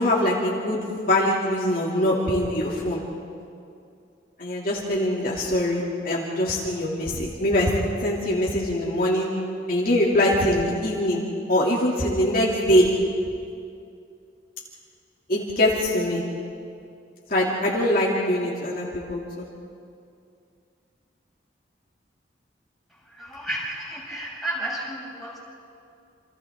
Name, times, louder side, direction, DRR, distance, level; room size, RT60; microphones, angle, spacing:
voice 1, 0.0-3.0 4.4-7.7 8.0-9.3 9.7-11.2 11.5-12.9 15.3-16.2 17.3-19.5, left 1 dB, 50° left, -4 dB, 2.7 m, -23 dB
voice 2, 23.1-25.4, right 1 dB, ahead, -7 dB, 6.7 m, -32 dB
28.5 x 27.5 x 3.7 m, 2.5 s
head